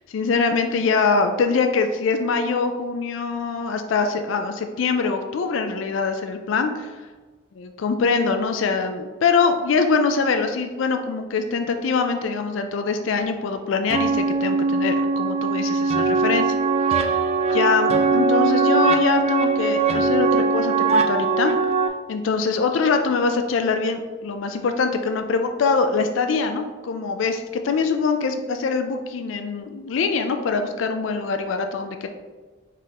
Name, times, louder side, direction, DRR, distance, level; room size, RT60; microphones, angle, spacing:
voice 1, 0.1-6.9 7.6-16.5 16.9-17.2 17.5-21.5 22.1-32.1, left 4 dB, 75° left, 6 dB, 0.4 m, -23 dB
sound 1, 13.9-21.9, right 4 dB, 30° right, 0.3 m, -20 dB
4.9 x 3.6 x 2.8 m, 1.3 s
head